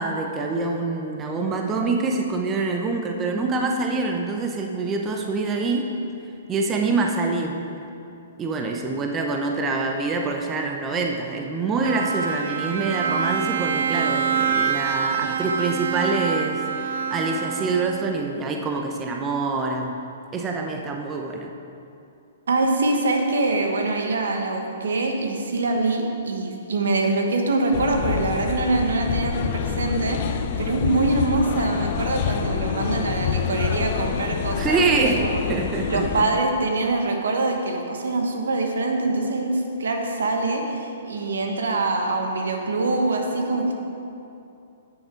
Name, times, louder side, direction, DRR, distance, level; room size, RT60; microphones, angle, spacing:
voice 1, 0.0-6.0 6.5-7.6 8.4-20.0 20.3-21.5 28.7-28.8 34.5-36.2, right 3 dB, 20° right, 2 dB, 0.7 m, -25 dB
Bowed string instrument, 11.8-18.2, right 6 dB, 65° right, 0.7 m, -26 dB
voice 2, 22.5-35.4 35.9-43.8, right 2 dB, 80° right, 3 dB, 1.3 m, -24 dB
sound 1, 27.7-36.2, left 8 dB, 50° left, 0.4 m, -27 dB
9.7 x 6.7 x 4.5 m, 2.7 s
hypercardioid pair, 135°, 0 cm